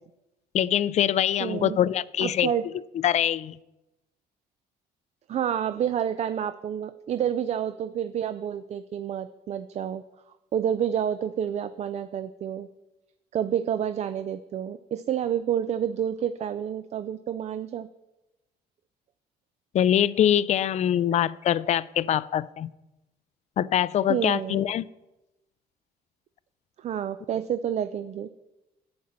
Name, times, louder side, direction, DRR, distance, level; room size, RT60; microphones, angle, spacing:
voice 1, 0.5-2.5 3.0-3.6 19.7-22.7 23.6-24.9, left 10 dB, 45° left, 0.4 m, -23 dB
voice 2, 1.4-1.8 2.2-2.7 5.3-10.0 10.5-12.7 13.3-17.9 24.1-24.7 26.8-28.3, right 9 dB, 40° right, 0.4 m, -29 dB
11.0 x 8.7 x 4.3 m
cardioid pair, 110°, 17 cm